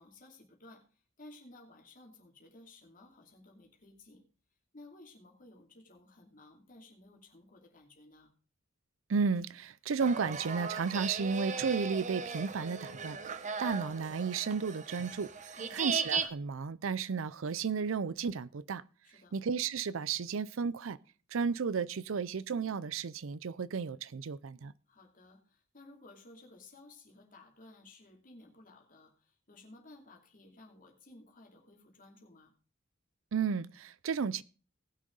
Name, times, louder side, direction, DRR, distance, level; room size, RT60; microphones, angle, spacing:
voice 1, 0.0-4.3 4.7-8.3 15.6-15.8 19.0-19.3 24.9-32.5, left 2 dB, 40° left, 2.8 m, -56 dB
voice 2, 9.1-18.8 19.3-21.0 21.3-24.7 33.3-34.4, right 5 dB, 70° right, 0.5 m, -33 dB
sound 1, 10.0-16.3, right 5 dB, 35° right, 0.8 m, -37 dB
19.0 x 6.4 x 3.9 m
head